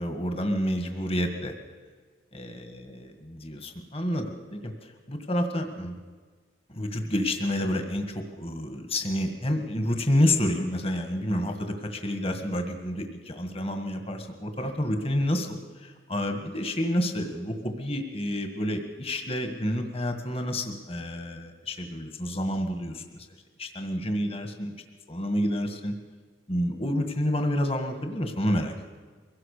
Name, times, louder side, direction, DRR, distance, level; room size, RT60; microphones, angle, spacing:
voice 1, 0.0-1.5 2.3-4.7 5.1-6.0 6.7-23.0 23.6-24.8 25.1-25.9 26.5-28.7, left 1 dB, 35° left, 6 dB, 1.8 m, -29 dB
23.0 x 17.0 x 6.7 m, 1.5 s
head